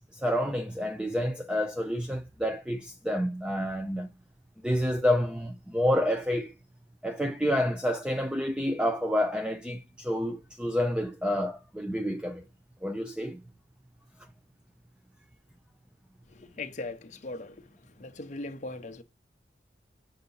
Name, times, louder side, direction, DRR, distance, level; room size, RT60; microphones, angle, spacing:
voice 1, 0.1-4.1 4.6-6.5 7.0-12.4 12.8-13.4, equal, 5° right, 0.4 m, -29 dB
voice 2, 16.3-17.7 18.0-19.0, left 2 dB, 40° left, 0.7 m, -39 dB
6.8 x 2.6 x 5.4 m
head